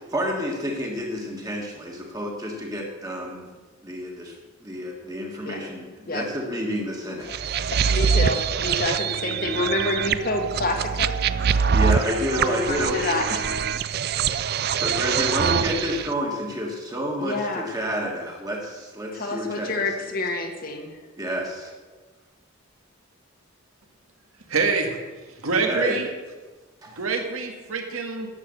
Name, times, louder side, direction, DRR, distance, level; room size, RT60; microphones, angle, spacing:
voice 1, 0.1-3.6 3.8-4.3 4.6-7.3 11.7-13.0 14.7-19.9 21.2-21.7 25.6-26.0 26.8-27.0, equal, 15° right, -1 dB, 1.6 m, -29 dB
sound 1, 7.3-16.1, right 6 dB, 45° right, 0.4 m, -24 dB
voice 2, 7.7-11.1 12.4-13.7 17.2-17.7 19.1-21.0, left 2 dB, 45° left, 3 dB, 1.4 m, -28 dB
voice 3, 24.5-25.0 25.3-26.1 27.0-28.3, right 4 dB, 85° right, 4 dB, 1.9 m, -26 dB
11.0 x 7.5 x 7.9 m, 1.3 s
head